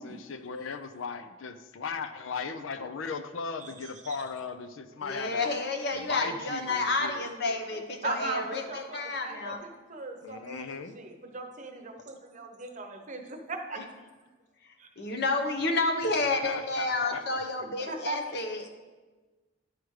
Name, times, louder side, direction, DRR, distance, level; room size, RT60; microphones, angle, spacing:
voice 1, 0.0-5.5 5.9-7.2 10.2-11.0 16.4-17.2 17.8-17.9, left 5 dB, 85° left, 10 dB, 0.5 m, -37 dB
voice 2, 5.0-9.6 13.8-13.9 15.0-18.7, left 3 dB, 55° left, 3 dB, 0.9 m, -30 dB
voice 3, 8.0-10.7 11.0-13.8 14.8-14.9 17.6-18.2, right 3 dB, 40° right, 4 dB, 0.8 m, -38 dB
11.5 x 4.9 x 3.2 m, 1.3 s
head